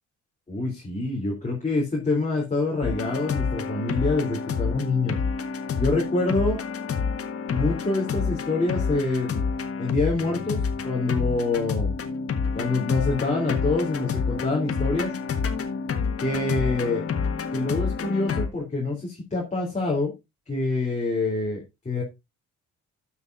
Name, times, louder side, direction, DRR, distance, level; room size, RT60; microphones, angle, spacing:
voice 1, 0.5-5.2 5.8-6.6 7.5-9.4 9.8-11.9 12.5-15.1 16.2-17.0 17.5-20.1 20.5-22.0, left 3 dB, 25° left, -2 dB, 3.4 m, -26 dB
sound 1, 2.8-18.5, left 5 dB, 50° left, 1.5 m, -28 dB
12.5 x 7.5 x 2.6 m, 0.23 s
cardioid pair, 90°, 30 cm